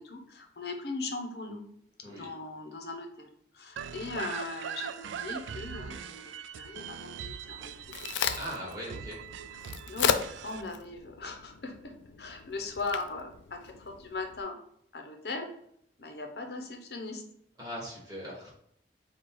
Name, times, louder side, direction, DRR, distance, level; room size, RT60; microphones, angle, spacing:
voice 1, 0.0-1.6 2.1-3.3 3.5-8.0 9.5-9.6 9.9-11.9 12.2-14.6 14.9-15.5 16.0-17.2, left 3 dB, 60° left, 3 dB, 0.7 m, -39 dB
sound 1, 3.8-10.6, right 8 dB, 85° right, 0.3 m, -41 dB
Crack, 7.5-14.4, left 8 dB, 85° left, 0.4 m, -35 dB
voice 2, 8.4-9.2 17.6-18.5, equal, 20° right, -5 dB, 1.4 m, -39 dB
4.6 x 2.4 x 4.5 m, 0.71 s
head